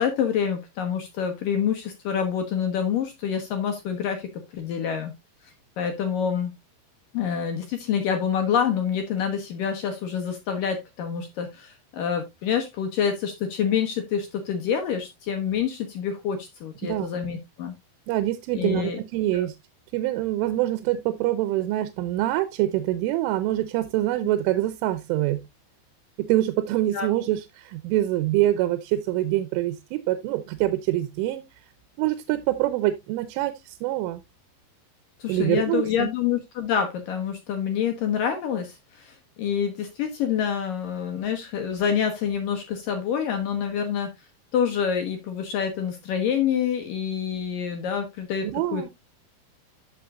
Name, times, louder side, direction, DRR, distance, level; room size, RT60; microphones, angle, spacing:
voice 1, 0.0-5.1 5.4-6.5 7.1-17.8 18.5-19.0 19.3-19.5 26.9-27.1 35.2-44.1 44.5-48.9, left 7 dB, 75° left, 2.0 m, -27 dB
voice 2, 18.1-19.6 19.9-25.4 26.2-31.4 32.0-34.2 35.3-36.1 48.4-48.9, right 15 dB, 90° right, 3.3 m, -25 dB
13.5 x 6.1 x 2.4 m
omnidirectional pair, 5.5 m